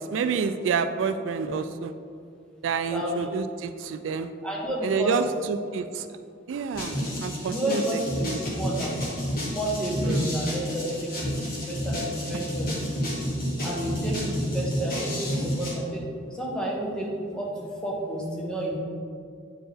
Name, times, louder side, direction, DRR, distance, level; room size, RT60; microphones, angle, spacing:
voice 1, 0.0-1.9 2.6-4.3 4.8-5.2 5.5-6.1 6.5-6.9 7.2-8.4 10.0-10.3 14.2-14.3, right 5 dB, 80° right, 9 dB, 0.3 m, -28 dB
voice 2, 2.9-3.3 4.4-5.3 7.5-8.9 9.4-11.3 11.7-13.1 13.6-16.0 16.3-18.8, right 1 dB, 5° left, -4 dB, 1.1 m, -31 dB
sound 1, 6.7-15.7, equal, 50° left, 1.6 m, -30 dB
8.7 x 4.4 x 3.4 m, 2.2 s
head